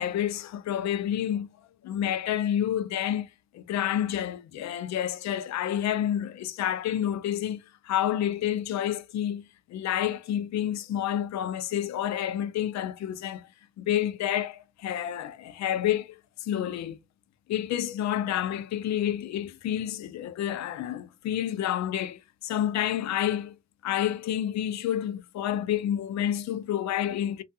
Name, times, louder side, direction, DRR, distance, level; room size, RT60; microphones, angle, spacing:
voice 1, 0.0-1.5 1.8-3.3 3.5-13.5 13.8-16.2 16.4-17.0 17.5-23.5 23.8-27.4, left 11 dB, 65° left, 0.5 m, -29 dB
2.4 x 2.3 x 2.6 m
cardioid pair, 90°, 30 cm